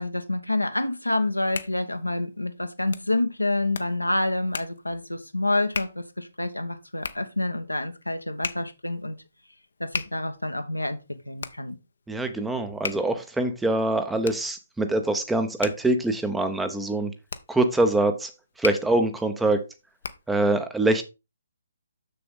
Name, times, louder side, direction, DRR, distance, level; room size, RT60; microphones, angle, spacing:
voice 1, 0.0-9.2 9.8-11.0 11.3-11.8, left 2 dB, 85° left, 1.1 m, -28 dB
Hands, 1.1-20.4, left 5 dB, 55° left, 0.7 m, -39 dB
voice 2, 12.1-17.1 17.5-18.3 18.6-19.7 20.3-21.0, right 2 dB, 5° right, 0.7 m, -24 dB
6.8 x 6.8 x 3.6 m
figure-of-eight pair, 140°, 0 cm